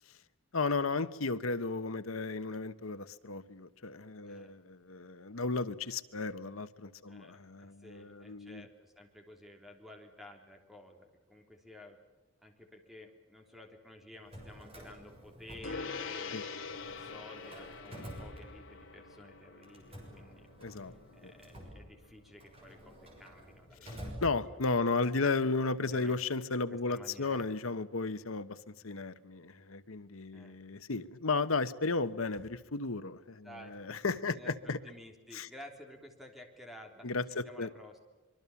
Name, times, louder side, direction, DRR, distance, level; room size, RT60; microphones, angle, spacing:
voice 1, 0.5-8.7 16.3-16.4 20.6-20.9 21.2-21.3 23.8-34.8 35.3-35.5 37.0-37.7, left 3 dB, 85° left, 13 dB, 1.1 m, -34 dB
voice 2, 4.2-4.5 7.1-12.0 12.4-16.6 17.0-24.5 25.9-26.2 26.7-27.5 30.3-30.8 33.4-33.7 34.3-38.0, left 1 dB, ahead, 3 dB, 3.2 m, -53 dB
Drawer open or close, 14.1-16.3 16.6-19.0 19.6-24.9, equal, 30° right, 6.8 m, -49 dB
Gong, 15.6-25.3, left 5 dB, 70° left, 1.7 m, -46 dB
25.0 x 23.5 x 7.2 m, 1.2 s
head